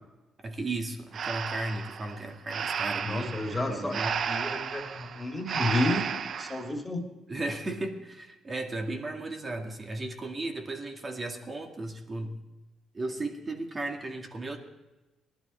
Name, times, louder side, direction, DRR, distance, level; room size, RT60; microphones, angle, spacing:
voice 1, 0.4-3.4 3.7-4.2 7.3-12.4 12.9-14.6, right 2 dB, 30° right, 3 dB, 2.1 m, -35 dB
Breathing, 1.1-6.7, right 7 dB, 55° right, 0.6 m, -33 dB
voice 2, 3.0-4.0 4.3-6.1 6.4-7.1, left 2 dB, 10° left, 1 dB, 2.6 m, -31 dB
18.5 x 11.5 x 4.4 m, 1.1 s
cardioid pair, 90°, 0 cm